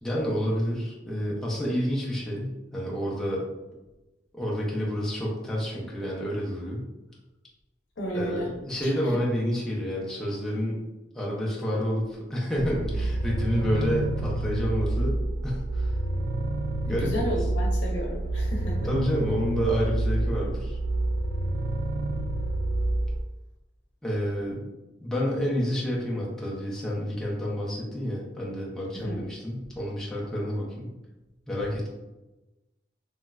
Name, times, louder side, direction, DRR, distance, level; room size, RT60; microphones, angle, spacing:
voice 1, 0.0-3.5 4.3-6.8 8.1-10.8 11.1-15.9 16.8-17.3 18.8-20.8 24.0-24.7 25.0-30.9 31.5-31.9, equal, 5° left, -5 dB, 0.5 m, -29 dB
voice 2, 8.0-8.5 8.8-9.2 16.9-18.9 28.9-29.2, equal, 75° left, -2 dB, 0.7 m, -33 dB
sound 1, 12.6-23.2, right 2 dB, 70° right, 0.3 m, -28 dB
3.0 x 2.3 x 2.2 m, 1.1 s
head